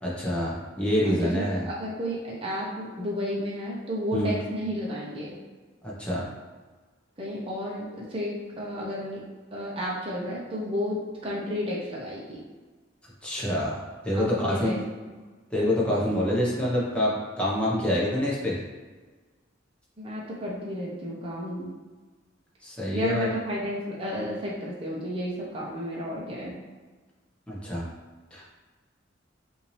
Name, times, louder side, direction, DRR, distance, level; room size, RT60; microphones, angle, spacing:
voice 1, 0.0-1.7 4.1-4.4 5.8-6.3 13.2-13.8 14.0-14.8 15.5-18.6 22.6-23.3 27.5-27.8 28.3-28.5, left 1 dB, 5° left, -6 dB, 1.1 m, -26 dB
voice 2, 1.0-5.3 7.2-9.2 9.5-12.4 14.1-14.8 15.0-15.2 20.0-21.7 22.9-26.5, equal, 30° right, -5 dB, 0.9 m, -32 dB
5.8 x 2.7 x 3.3 m, 1.4 s
head